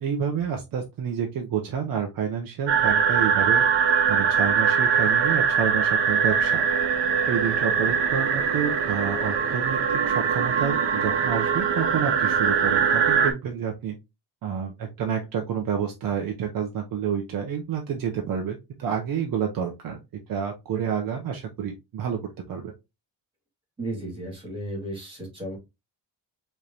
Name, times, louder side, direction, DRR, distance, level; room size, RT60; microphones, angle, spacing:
voice 1, 0.0-3.6 4.1-6.6 7.3-14.0 14.4-20.0 20.3-22.2 22.5-22.7, right 7 dB, 55° right, 3 dB, 0.8 m, -29 dB
sound 1, 2.7-13.3, right 6 dB, 80° right, 1.1 m, -22 dB
voice 2, 23.8-25.6, right 1 dB, 10° right, -1 dB, 2.4 m, -34 dB
5.0 x 3.2 x 2.8 m, 0.23 s
cardioid pair, 180°, 42 cm